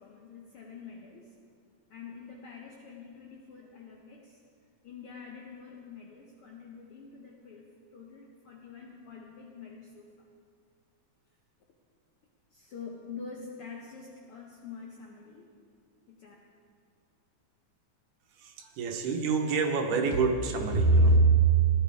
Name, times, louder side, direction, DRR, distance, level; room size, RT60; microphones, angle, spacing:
voice 1, 0.0-1.3 1.9-4.4 4.8-7.6 7.9-10.3 12.5-15.5 16.1-16.3, left 5 dB, 70° left, -1 dB, 1.3 m, -46 dB
voice 2, 18.4-21.2, right 2 dB, 85° right, 3 dB, 2.5 m, -25 dB
17.0 x 10.5 x 3.5 m, 2.3 s
omnidirectional pair, 3.5 m